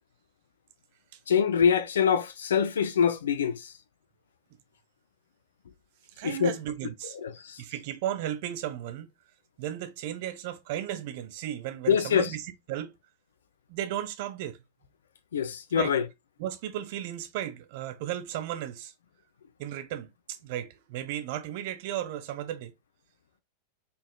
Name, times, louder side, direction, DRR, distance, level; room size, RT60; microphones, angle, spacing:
voice 1, 1.3-3.7 6.2-6.5 7.2-7.6 11.9-12.3 15.3-16.0, left 7 dB, 65° left, 0.5 m, -24 dB
voice 2, 6.2-7.2 7.6-9.1 9.6-12.9 13.7-14.6 15.7-15.9 16.4-18.9 19.6-22.7, right 11 dB, 50° right, 0.5 m, -35 dB
4.1 x 3.6 x 2.2 m
figure-of-eight pair, 90°, 0 cm